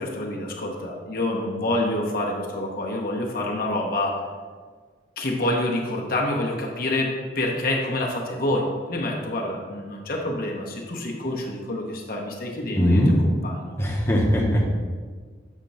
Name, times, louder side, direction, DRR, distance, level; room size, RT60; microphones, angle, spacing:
voice 1, 0.0-4.2 5.2-13.8, left 1 dB, 50° left, -1 dB, 0.8 m, -27 dB
voice 2, 12.7-13.1 13.8-14.6, equal, 15° left, -4 dB, 0.8 m, -20 dB
7.3 x 2.9 x 5.3 m, 1.5 s
head